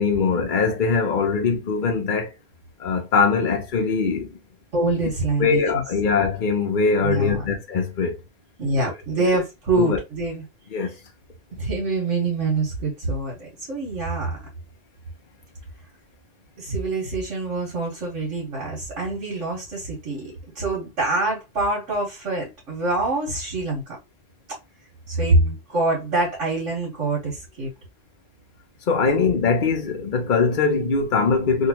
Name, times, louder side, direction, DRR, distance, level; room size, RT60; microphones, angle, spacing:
voice 1, 0.0-2.3 2.8-4.4 5.4-8.2 9.2-9.3 9.8-10.0 10.7-10.9 28.9-31.7, left 5 dB, 45° left, 0.9 m, -22 dB
voice 2, 4.7-5.8 7.0-7.5 8.6-10.4 11.6-14.4 16.6-24.0 25.1-27.7 29.1-29.2, right 2 dB, 75° right, 1.9 m, -25 dB
3.6 x 2.6 x 2.9 m
omnidirectional pair, 1.3 m